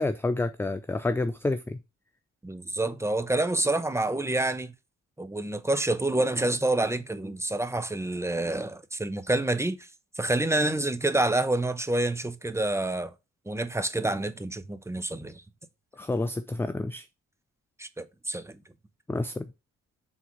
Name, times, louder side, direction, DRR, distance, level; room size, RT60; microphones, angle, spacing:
voice 1, 0.0-1.8 16.0-17.0 19.1-19.5, left 2 dB, 10° left, 0.4 m, -29 dB
voice 2, 2.4-4.7 5.2-9.8 10.2-13.1 13.5-15.3 17.8-18.6, right 2 dB, 10° right, 0.8 m, -28 dB
5.8 x 4.0 x 6.2 m
cardioid pair, 90°, 30 cm